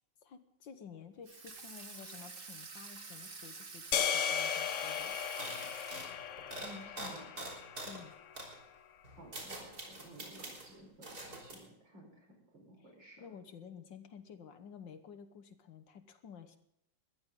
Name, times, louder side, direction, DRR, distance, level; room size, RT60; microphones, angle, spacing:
voice 1, 0.2-5.2 7.8-8.2 12.8-12.9 13.2-16.6, left 7 dB, 70° left, 9 dB, 1.9 m, -52 dB
Water tap faucet / Sink (filling or washing), 1.3-6.5, right 4 dB, 30° right, 1.4 m, -49 dB
sound 1, 3.9-8.3, left 8 dB, 55° left, 0.9 m, -36 dB
sound 2, 4.3-4.4 4.6-4.9 5.4-8.0 8.3-8.5 9.0-10.7 11.0-11.5, right 2 dB, 50° right, 4.2 m, -45 dB
voice 2, 6.6-7.3 9.1-13.2, equal, 65° right, 2 dB, 5.5 m, -54 dB
21.0 x 14.5 x 3.8 m, 0.78 s
omnidirectional pair, 2.1 m